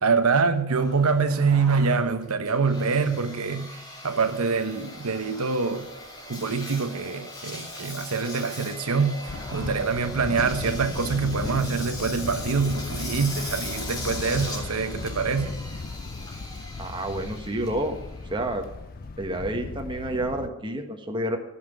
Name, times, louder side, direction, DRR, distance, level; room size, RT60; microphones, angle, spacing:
voice 1, 0.0-3.7 4.0-5.9 6.3-15.6, right 4 dB, 85° right, 1.0 m, -25 dB
Engine, 0.7-19.1, left 1 dB, 20° left, 2.8 m, -40 dB
Thunder, 9.3-20.5, left 3 dB, 40° left, 0.5 m, -36 dB
voice 2, 16.8-18.0 18.3-18.6 19.2-21.4, right 1 dB, 20° right, 1.4 m, -29 dB
15.5 x 5.9 x 9.1 m
head